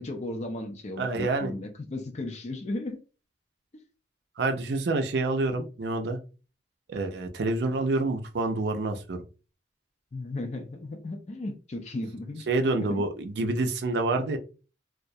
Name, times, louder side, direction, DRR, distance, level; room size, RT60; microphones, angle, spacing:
voice 1, 0.0-3.0 10.1-12.5 12.8-13.1, left 2 dB, 40° left, 0.4 m, -35 dB
voice 2, 1.0-1.5 4.4-6.2 6.9-9.2 12.5-14.4, right 2 dB, 65° right, 0.4 m, -27 dB
2.3 x 2.1 x 2.6 m
head